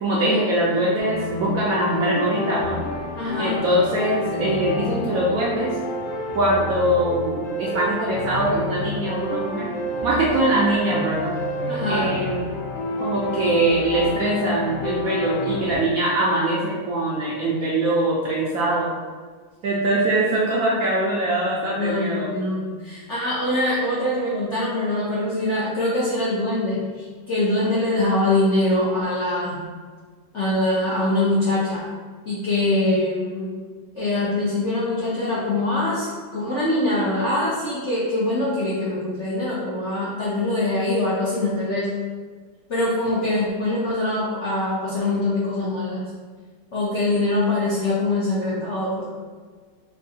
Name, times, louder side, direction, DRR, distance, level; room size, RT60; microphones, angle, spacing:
voice 1, 0.0-2.8 3.4-5.8 6.3-9.7 10.0-11.4 11.9-12.5 13.0-18.9 19.6-22.3, right 1 dB, 70° right, -5 dB, 0.8 m, -22 dB
sound 1, 1.0-15.8, left 1 dB, 85° left, 1.7 m, -29 dB
voice 2, 3.2-3.6 11.7-12.1 21.7-29.6 30.3-31.8 32.3-33.5 33.9-41.9 42.7-46.0 46.7-49.1, left 2 dB, 65° left, -8 dB, 0.7 m, -23 dB
4.4 x 2.3 x 2.7 m, 1.5 s
omnidirectional pair, 2.0 m